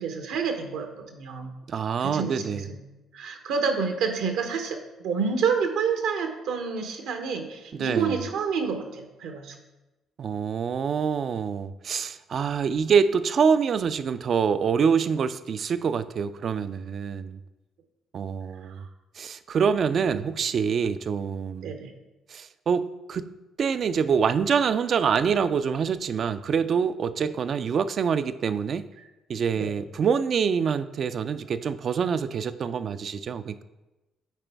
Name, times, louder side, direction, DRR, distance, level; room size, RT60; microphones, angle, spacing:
voice 1, 0.0-1.5 2.0-2.8 3.1-9.5 18.6-18.8 21.6-21.9 27.2-27.3 29.6-29.7, right 5 dB, 80° right, 5 dB, 0.9 m, -29 dB
voice 2, 1.7-2.6 7.7-8.2 10.2-17.4 18.1-18.8 19.2-21.7 22.3-23.3 23.6-28.9 29.3-33.6, right 6 dB, 55° right, 13 dB, 0.4 m, -25 dB
9.0 x 4.4 x 3.4 m, 1.0 s
supercardioid pair, 60°, 0 cm